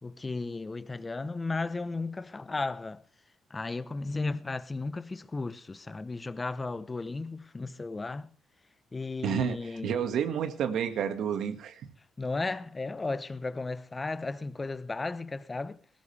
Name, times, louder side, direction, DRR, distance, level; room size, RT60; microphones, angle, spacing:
voice 1, 0.0-3.0 3.5-8.3 8.9-9.9 12.2-15.8, left 3 dB, 25° left, 1.0 m, -34 dB
voice 2, 9.2-11.8, right 8 dB, 75° right, 1.9 m, -30 dB
19.0 x 16.0 x 3.4 m
cardioid pair, 90°, 0 cm